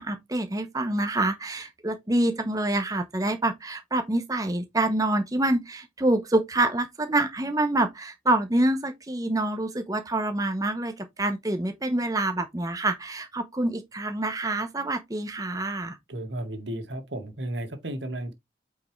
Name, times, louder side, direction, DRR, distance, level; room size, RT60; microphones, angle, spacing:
voice 1, 0.0-16.0, right 2 dB, 20° right, 0.9 m, -26 dB
voice 2, 16.1-18.3, right 1 dB, 80° right, 2.1 m, -33 dB
8.8 x 4.7 x 3.2 m
head